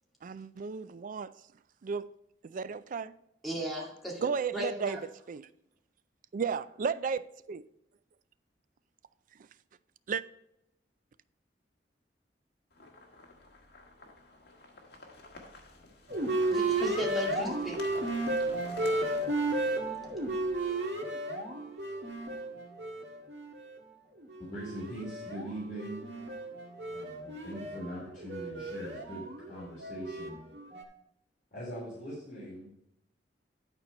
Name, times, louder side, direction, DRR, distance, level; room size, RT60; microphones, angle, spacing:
voice 1, 0.2-1.3 1.8-2.1 2.4-3.1 4.2-5.0 5.3-5.5 6.3-7.6 10.1-10.2, right 6 dB, 50° right, 0.4 m, -33 dB
voice 2, 3.4-5.0 16.5-17.8, equal, ahead, 2.2 m, -37 dB
sound 1, 12.7-20.7, left 2 dB, 65° left, 1.6 m, -51 dB
sound 2, 16.1-23.8 24.2-30.8, right 2 dB, 80° right, 1.8 m, -34 dB
voice 3, 24.5-26.0 26.8-30.4 31.5-32.7, right 1 dB, 50° left, 3.3 m, -41 dB
11.0 x 4.5 x 5.4 m
head